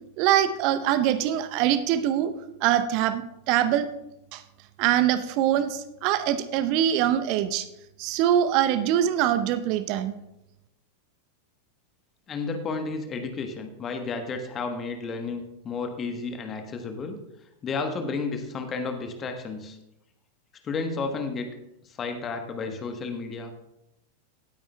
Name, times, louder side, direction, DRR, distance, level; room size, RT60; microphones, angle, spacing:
voice 1, 0.2-2.3 2.6-3.2 3.5-3.9 4.3-4.4 4.8-7.7 8.0-10.1, right 11 dB, 45° right, 12 dB, 0.6 m, -23 dB
voice 2, 12.3-17.2 17.6-19.8 20.6-21.5 21.8-23.5, left 4 dB, 25° left, 6 dB, 1.1 m, -32 dB
17.5 x 8.8 x 2.2 m, 0.88 s
figure-of-eight pair, 90°, 0 cm